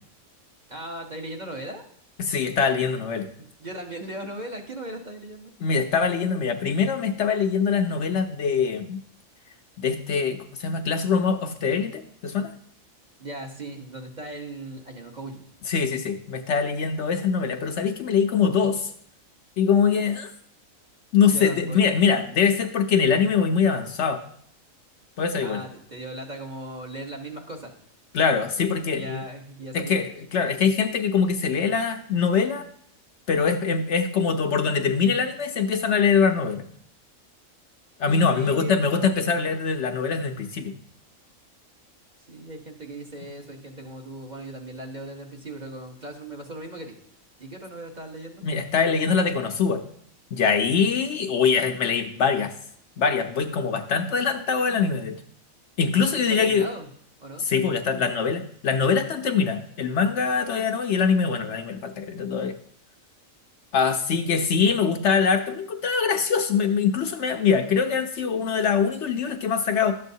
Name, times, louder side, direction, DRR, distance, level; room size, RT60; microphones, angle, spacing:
voice 1, 0.7-1.8 3.4-5.5 13.2-15.5 21.2-22.3 25.4-27.7 28.9-30.0 38.3-38.9 42.3-47.0 47.4-48.4 56.1-56.9 57.2-57.5, right 1 dB, 35° right, 1 dB, 1.0 m, -38 dB
voice 2, 2.2-3.3 5.6-9.0 9.8-12.5 15.7-18.9 19.6-20.3 21.1-24.2 25.2-25.6 28.1-29.2 29.7-32.7 33.3-36.6 38.0-40.7 48.4-49.8 50.3-52.5 53.0-55.2 55.8-56.7 57.4-62.6 63.7-69.9, left 6 dB, 65° left, 6 dB, 0.9 m, -23 dB
11.5 x 7.6 x 2.7 m, 0.64 s
omnidirectional pair, 1.4 m